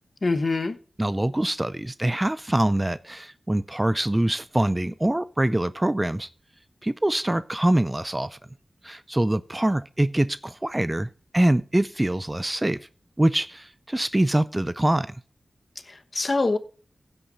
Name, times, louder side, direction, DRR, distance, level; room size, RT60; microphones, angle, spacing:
voice 1, 0.2-0.8 15.9-16.6, left 3 dB, 45° left, 1.1 m, -24 dB
voice 2, 1.0-6.3 6.8-8.4 8.8-12.9 13.2-15.2, right 1 dB, 15° right, 0.4 m, -24 dB
16.0 x 5.7 x 4.0 m
wide cardioid pair, 70°, 0 cm